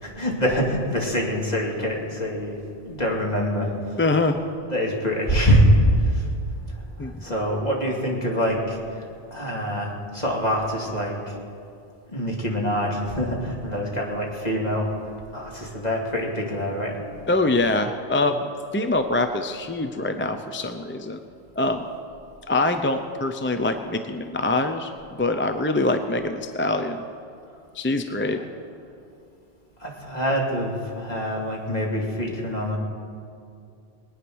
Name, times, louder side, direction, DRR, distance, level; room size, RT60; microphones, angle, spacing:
voice 1, 0.0-4.0 4.7-5.7 5.9-6.3 6.7-11.4 12.1-17.0 29.8-32.8, equal, 40° left, -2 dB, 2.6 m, -25 dB
voice 2, 4.0-4.4 7.0-7.2 17.3-18.5 18.7-21.2 21.6-21.9 22.5-24.9 25.2-27.0 27.7-28.4, left 2 dB, 15° left, 7 dB, 0.4 m, -24 dB
21.0 x 9.7 x 6.3 m, 2.4 s
omnidirectional pair, 1.1 m